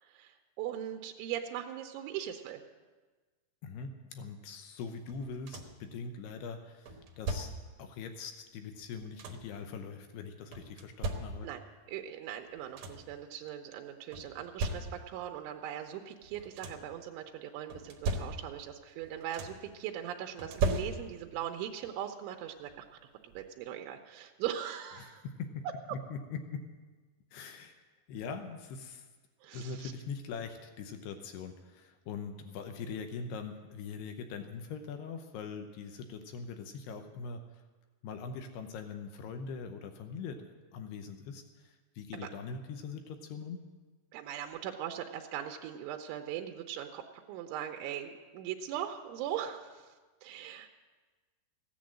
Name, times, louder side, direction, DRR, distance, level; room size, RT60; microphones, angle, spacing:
voice 1, 0.0-2.6 11.4-11.6 11.9-22.8 23.2-25.3 29.4-29.9 42.1-42.3 44.1-47.0 47.3-49.9 50.2-50.8, right 10 dB, 90° right, 4 dB, 3.2 m, -40 dB
voice 2, 3.6-7.5 7.8-11.5 25.0-25.7 25.9-26.6 27.3-27.8 28.1-29.1 29.5-37.6 38.0-43.6, left 5 dB, 75° left, 6 dB, 2.6 m, -42 dB
sound 1, 5.1-5.9 6.9-7.8 8.7-9.6 10.5-11.7 12.3-12.4 12.6-13.2 14.1-15.3 16.2-17.0 17.7-18.7 19.0-19.8 20.4-21.4 22.7-22.8 23.3-23.5, right 3 dB, 75° right, 1.9 m, -37 dB
15.5 x 10.5 x 7.5 m, 1.3 s
omnidirectional pair, 5.5 m